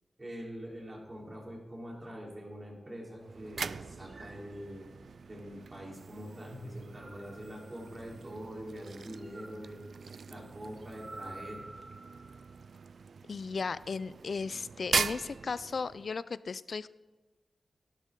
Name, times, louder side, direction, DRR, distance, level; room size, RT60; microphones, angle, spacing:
voice 1, 0.2-4.9 5.3-9.8 10.3-11.7, equal, 30° right, -2 dB, 3.9 m, -44 dB
sound 1, 2.0-3.3 4.0-5.3 6.7-8.5 9.1-12.6, right 2 dB, 50° right, 3.8 m, -52 dB
sound 2, 3.2-16.2, right 5 dB, 75° right, 0.3 m, -41 dB
voice 2, 13.3-16.9, left 5 dB, 70° left, 17 dB, 0.4 m, -36 dB
12.0 x 12.0 x 3.8 m, 1.2 s
cardioid pair, 60°, 0 cm